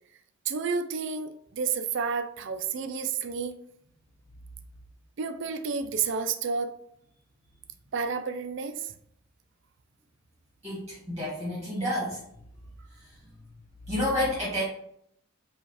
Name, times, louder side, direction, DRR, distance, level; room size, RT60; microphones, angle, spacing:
voice 1, 0.4-3.6 5.2-6.8 7.9-8.9, right 5 dB, 60° right, 8 dB, 0.4 m, -30 dB
voice 2, 10.6-12.2 13.9-14.6, left 1 dB, 15° right, -7 dB, 1.4 m, -29 dB
5.1 x 2.4 x 3.2 m, 0.70 s
head